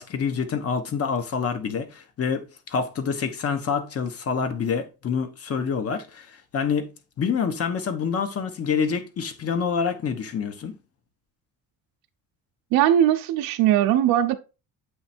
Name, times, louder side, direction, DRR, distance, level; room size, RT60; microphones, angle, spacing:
voice 1, 0.0-6.9 7.2-10.7, left 6 dB, 45° left, 1.1 m, -27 dB
voice 2, 12.7-14.3, right 11 dB, 85° right, 0.6 m, -19 dB
7.6 x 3.2 x 4.3 m
cardioid pair, 115°, 34 cm